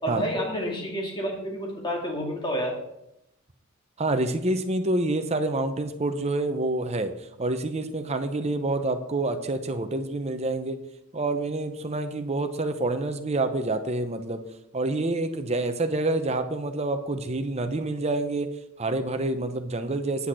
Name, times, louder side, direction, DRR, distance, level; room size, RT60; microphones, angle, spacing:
voice 1, 0.0-2.8, equal, 20° left, 0 dB, 2.2 m, -29 dB
voice 2, 4.0-7.1 7.4-10.8 11.1-14.4 14.7-18.5 18.8-20.3, right 2 dB, 30° right, 8 dB, 0.8 m, -27 dB
9.6 x 6.4 x 6.2 m, 0.83 s
head